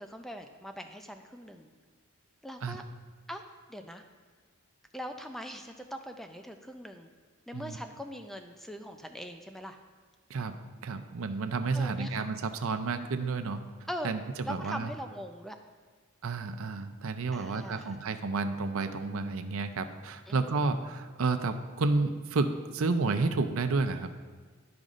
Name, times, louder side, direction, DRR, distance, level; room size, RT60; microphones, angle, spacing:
voice 1, 0.0-1.7 2.4-2.8 3.3-4.0 4.9-7.1 7.5-9.8 11.7-12.3 13.9-14.1 14.5-15.6 17.3-17.9 20.3-20.8, equal, ahead, 5 dB, 0.4 m, -42 dB
voice 2, 10.8-13.6 14.0-14.9 16.2-24.1, right 3 dB, 75° right, 8 dB, 0.5 m, -31 dB
12.0 x 5.1 x 2.5 m, 1.5 s
head